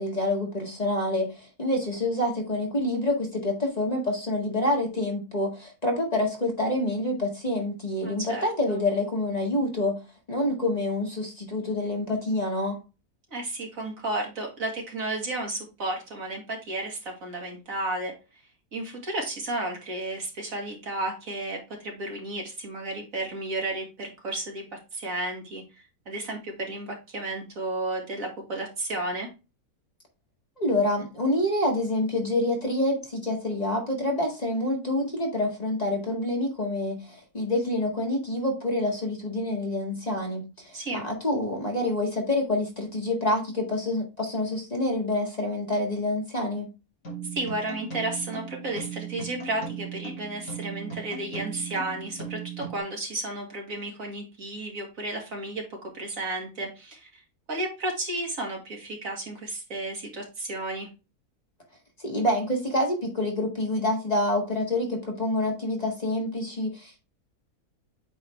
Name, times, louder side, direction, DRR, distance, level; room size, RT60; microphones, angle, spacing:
voice 1, 0.0-10.0 10.3-12.8 30.6-46.7 62.0-67.0, left 1 dB, 25° left, 1.9 m, -27 dB
voice 2, 8.0-8.8 13.3-18.1 18.7-29.3 40.7-41.1 47.3-57.2 57.5-60.9, right 2 dB, 65° right, 2.5 m, -33 dB
sound 1, 47.0-52.8, right 6 dB, 75° left, 3.3 m, -38 dB
8.5 x 3.9 x 3.3 m
omnidirectional pair, 1.6 m